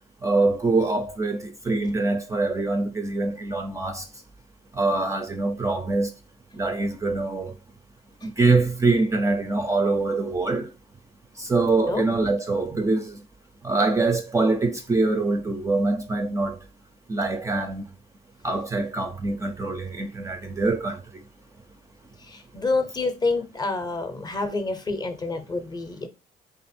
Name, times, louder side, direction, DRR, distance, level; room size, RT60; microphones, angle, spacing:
voice 1, 0.2-4.0 4.7-6.1 6.5-7.5 8.2-10.7 11.4-13.2 13.6-16.6 17.1-17.9 18.4-21.0, right 3 dB, 20° right, 0.4 m, -24 dB
voice 2, 22.3-26.1, left 3 dB, 25° left, 0.6 m, -28 dB
3.0 x 2.4 x 4.2 m
cardioid pair, 110°, 17 cm